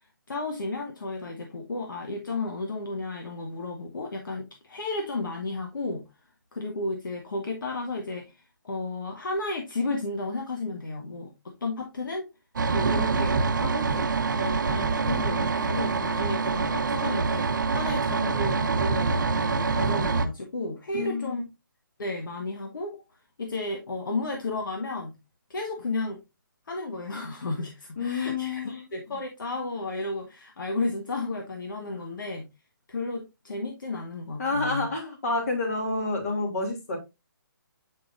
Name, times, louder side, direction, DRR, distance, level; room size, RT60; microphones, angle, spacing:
voice 1, 0.3-6.0 6.5-8.4 8.6-12.3 12.7-21.4 22.0-23.0 23.4-25.2 25.5-26.2 26.7-32.4 32.9-34.9, left 2 dB, 70° left, 1.4 m, -33 dB
sound 1, 12.6-20.3, right 4 dB, 65° right, 0.8 m, -25 dB
voice 2, 20.9-21.4 28.0-28.9 34.4-37.0, left 3 dB, 50° left, 2.8 m, -29 dB
7.8 x 4.8 x 2.5 m
hypercardioid pair, 165°, 11 cm